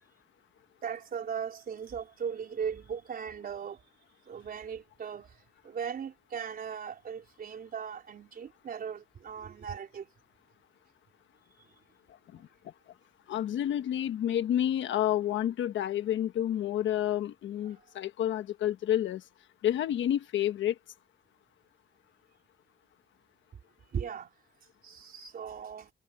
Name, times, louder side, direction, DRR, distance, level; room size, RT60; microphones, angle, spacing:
voice 1, 0.8-3.8 4.3-5.4 5.6-10.1 23.9-24.3 24.8-25.9, right 7 dB, 50° right, 4.1 m, -38 dB
voice 2, 13.3-19.2 19.6-20.8, left 11 dB, 90° left, 1.3 m, -29 dB
cardioid pair, 145°, 19 cm